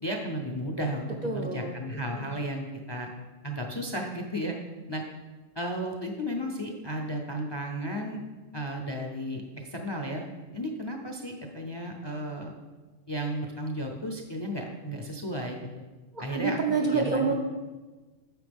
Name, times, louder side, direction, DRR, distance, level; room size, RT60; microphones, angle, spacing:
voice 1, 0.0-3.1 3.4-4.6 4.9-5.0 5.6-8.2 8.5-10.3 10.5-12.5 13.1-15.8 16.2-16.6 16.9-17.3, equal, 30° left, 2 dB, 0.5 m, -34 dB
voice 2, 1.2-1.7 2.1-2.3 16.1-17.3, right 4 dB, 50° right, 1 dB, 0.6 m, -28 dB
9.0 x 6.0 x 3.5 m, 1.3 s
omnidirectional pair, 1.3 m